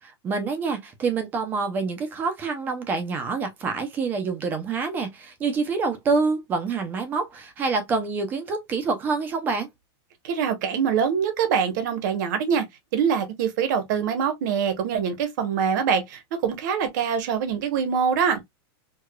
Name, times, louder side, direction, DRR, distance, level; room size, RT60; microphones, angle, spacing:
voice 1, 0.0-9.7, right 4 dB, 15° right, 0.5 m, -27 dB
voice 2, 10.2-12.6 12.9-18.4, right 7 dB, 45° right, 0.9 m, -24 dB
4.7 x 2.3 x 2.2 m
supercardioid pair, 180°, 14 cm